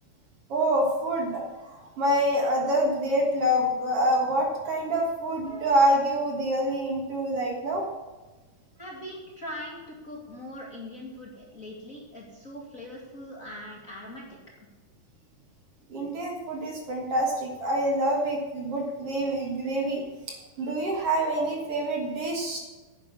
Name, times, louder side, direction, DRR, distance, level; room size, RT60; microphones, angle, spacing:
voice 1, 0.5-7.8 15.9-20.0 20.6-22.6, right 1 dB, 50° right, 1 dB, 2.4 m, -26 dB
voice 2, 8.8-14.4, left 1 dB, 30° left, -2 dB, 2.2 m, -41 dB
9.9 x 9.8 x 7.0 m, 1.2 s
omnidirectional pair, 3.6 m